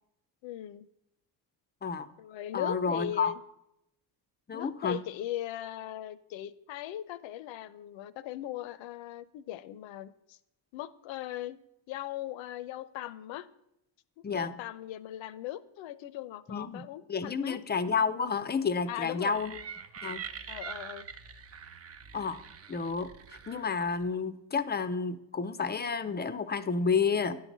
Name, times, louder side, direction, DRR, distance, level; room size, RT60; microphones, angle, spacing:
voice 1, 0.4-0.9 2.2-3.4 4.5-10.4 10.7-11.6 11.9-13.5 14.3-17.6 18.9-19.4 20.5-21.1, left 13 dB, 70° left, 16 dB, 0.7 m, -39 dB
voice 2, 2.5-3.3 4.5-5.0 14.2-14.6 16.5-16.8 17.1-19.6 20.0-20.2 22.1-22.4 22.7-27.4, left 5 dB, 20° left, 12 dB, 0.4 m, -30 dB
sound 1, 19.3-24.1, right 7 dB, 30° right, 0.5 m, -44 dB
9.7 x 4.0 x 7.3 m, 0.82 s
supercardioid pair, 80°, 48 cm